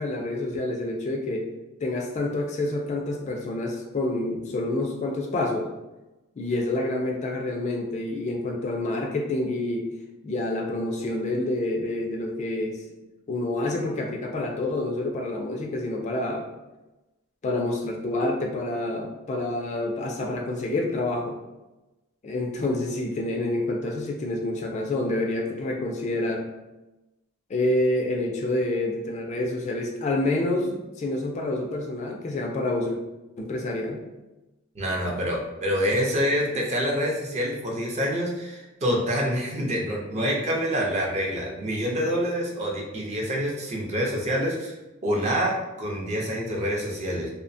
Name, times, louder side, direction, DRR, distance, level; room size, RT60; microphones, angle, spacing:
voice 1, 0.0-1.5 1.8-5.7 6.4-9.9 10.2-12.8 13.3-16.4 17.4-21.4 22.2-26.5 27.5-33.0 33.4-34.0, left 2 dB, 35° left, 1 dB, 0.3 m, -28 dB
voice 2, 34.7-44.8 45.0-47.3, equal, 30° right, -2 dB, 0.5 m, -26 dB
2.7 x 2.1 x 2.5 m, 1.0 s
head